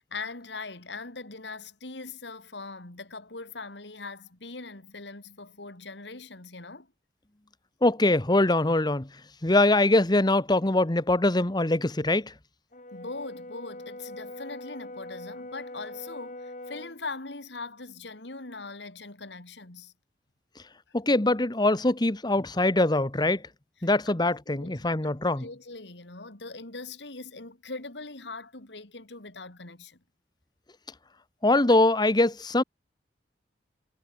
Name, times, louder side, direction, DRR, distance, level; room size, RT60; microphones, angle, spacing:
voice 1, 0.0-6.9 12.9-19.9 23.8-24.2 24.5-30.0, left 3 dB, 90° left, 3.0 m, -41 dB
voice 2, 7.8-9.1 9.4-12.3 20.9-23.4 23.8-25.5 31.4-32.6, left 2 dB, 25° left, 1.1 m, -23 dB
Brass instrument, 12.7-17.0, left 1 dB, 45° left, 7.2 m, -42 dB
head